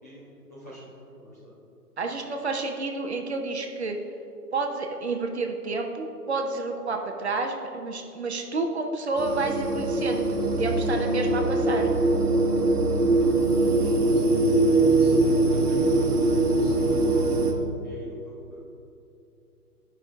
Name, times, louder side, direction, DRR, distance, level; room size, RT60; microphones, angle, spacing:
voice 1, 0.0-1.5 13.1-18.6, equal, 10° left, -10 dB, 0.6 m, -47 dB
voice 2, 2.0-4.0 4.5-11.9, right 3 dB, 45° right, 3 dB, 0.8 m, -30 dB
sound 1, 9.2-17.5, right 2 dB, 65° right, 1.2 m, -22 dB
12.5 x 5.6 x 3.6 m, 2.8 s
figure-of-eight pair, 150°, 48 cm